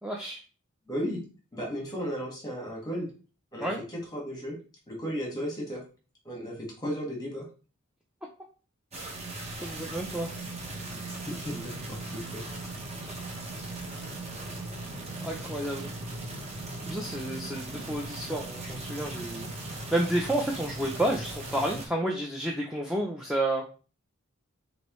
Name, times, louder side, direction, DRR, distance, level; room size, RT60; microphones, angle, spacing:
voice 1, 0.0-0.4 3.6-3.8 9.6-10.3 14.9-15.9 16.9-23.7, right 1 dB, 5° right, -1 dB, 0.5 m, -31 dB
voice 2, 0.9-1.2 1.5-3.1 3.5-4.5 4.9-5.8 6.2-7.5 11.3-12.4, equal, 20° left, -1 dB, 1.6 m, -35 dB
sound 1, 8.9-21.9, right 2 dB, 30° right, 1.0 m, -38 dB
6.3 x 2.7 x 3.1 m, 0.36 s
head